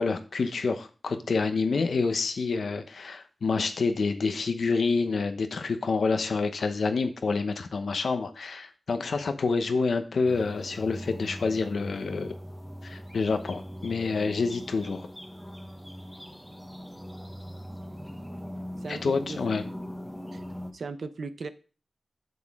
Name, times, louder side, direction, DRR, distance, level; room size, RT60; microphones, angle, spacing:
voice 1, 0.0-12.3 12.8-15.1 18.9-19.6, left 4 dB, 80° left, 8 dB, 0.9 m, -28 dB
sound 1, 10.2-20.7, equal, 5° left, 1.0 m, -41 dB
voice 2, 18.8-19.4 20.3-20.4 20.7-21.5, right 4 dB, 75° right, 11 dB, 0.7 m, -37 dB
8.0 x 7.0 x 3.6 m, 0.36 s
wide cardioid pair, 80°, 0 cm